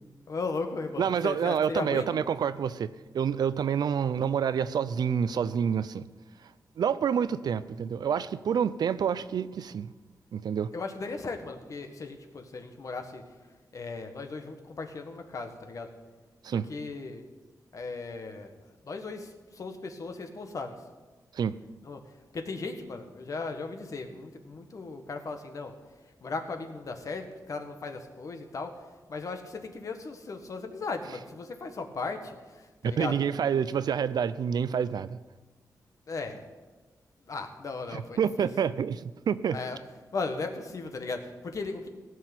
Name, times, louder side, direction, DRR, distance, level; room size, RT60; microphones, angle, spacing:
voice 1, 0.3-2.1 10.7-13.2 13.7-15.9 16.5-17.2 17.7-18.5 18.8-20.8 21.8-22.0 22.3-25.7 26.2-28.7 29.1-33.6 36.1-36.5 37.3-38.5 39.5-39.8 40.1-41.9, left 3 dB, 55° left, 6 dB, 1.6 m, -37 dB
voice 2, 1.0-6.0 6.8-9.9 10.3-10.7 16.4-16.7 21.3-21.6 32.8-35.2 37.9-39.6, right 7 dB, 80° right, 15 dB, 0.5 m, -28 dB
17.5 x 6.3 x 9.1 m, 1.3 s
wide cardioid pair, 120°, 7 cm